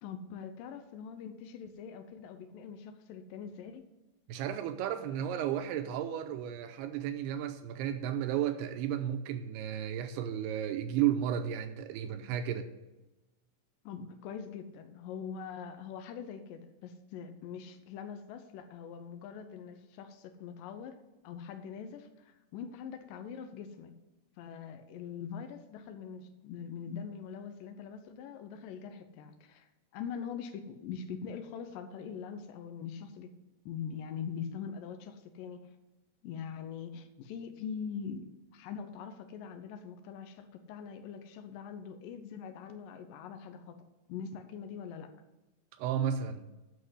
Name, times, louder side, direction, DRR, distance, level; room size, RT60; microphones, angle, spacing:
voice 1, 0.0-3.9 13.9-21.0 21.2-23.9 24.4-33.3 33.7-35.7 36.2-38.2 38.5-43.8 44.1-45.1, left 7 dB, 85° left, 7 dB, 2.0 m, -43 dB
voice 2, 4.3-12.7 45.8-46.5, right 10 dB, 80° right, 7 dB, 2.5 m, -33 dB
8.0 x 6.4 x 8.1 m, 1.0 s
omnidirectional pair, 4.9 m